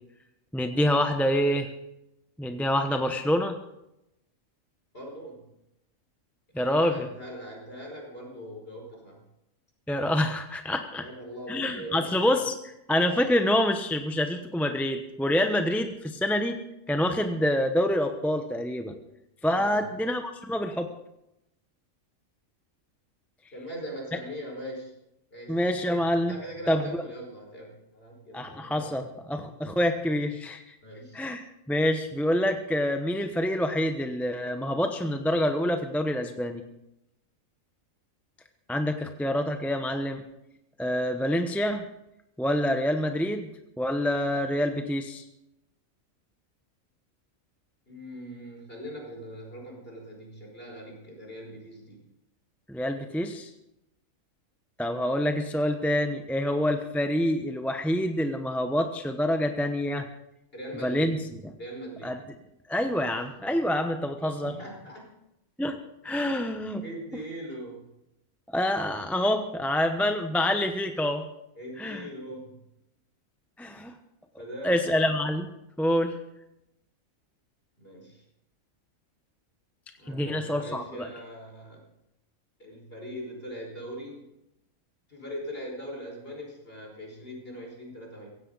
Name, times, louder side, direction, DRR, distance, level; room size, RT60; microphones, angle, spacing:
voice 1, 0.5-1.7 2.4-3.6 6.5-7.1 9.9-11.0 11.5-16.6 16.9-18.9 19.4-20.9 25.5-26.3 26.7-27.0 28.3-30.8 31.1-36.6 38.7-40.2 40.8-41.9 42.4-43.5 43.8-45.2 52.7-53.5 54.8-60.1 60.8-61.2 62.0-62.2 62.7-64.5 65.6-65.8 66.0-66.8 68.5-71.2 71.8-72.1 73.6-73.9 74.6-75.5 75.8-76.1 80.1-81.1, left 1 dB, ahead, 6 dB, 0.8 m, -26 dB
voice 2, 4.9-5.5 6.5-9.2 11.0-12.3 19.5-19.9 23.5-25.0 25.3-25.6 26.3-29.1 30.8-31.2 47.9-52.0 60.5-61.2 61.6-62.2 64.4-65.1 66.8-67.9 71.6-72.7 74.4-74.9 77.8-78.2 80.0-81.8 82.6-84.3 85.1-88.3, equal, 40° left, -1 dB, 5.2 m, -41 dB
16.5 x 16.0 x 4.0 m, 0.85 s
omnidirectional pair, 1.4 m